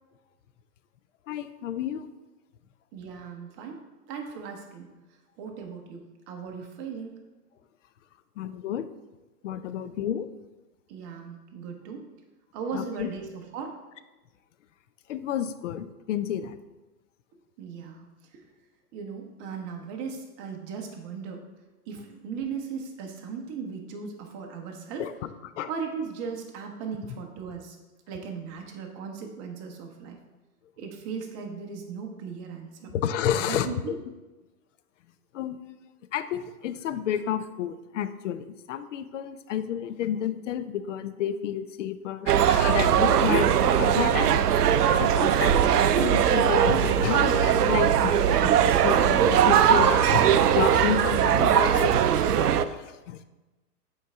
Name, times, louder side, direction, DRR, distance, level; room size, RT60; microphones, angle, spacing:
voice 1, 1.3-2.1 8.4-8.8 9.4-10.3 12.7-13.1 15.1-16.6 25.0-25.7 32.9-33.7 35.3-35.8 36.1-43.5 43.8-44.4 45.0-53.2, left 9 dB, 50° left, 12 dB, 0.6 m, -31 dB
voice 2, 2.9-3.8 4.1-5.0 5.4-6.0 6.3-7.2 9.6-9.7 10.9-12.0 12.5-13.8 17.6-18.1 18.3-18.4 18.9-21.4 21.9-25.1 25.7-27.8 28.1-30.2 30.8-32.9 33.5-34.0, right 5 dB, 30° right, 2 dB, 1.1 m, -37 dB
sound 1, 42.3-52.7, right 9 dB, 75° right, 0.6 m, -20 dB
7.5 x 4.6 x 3.6 m, 1.1 s
hypercardioid pair, 115°, 47 cm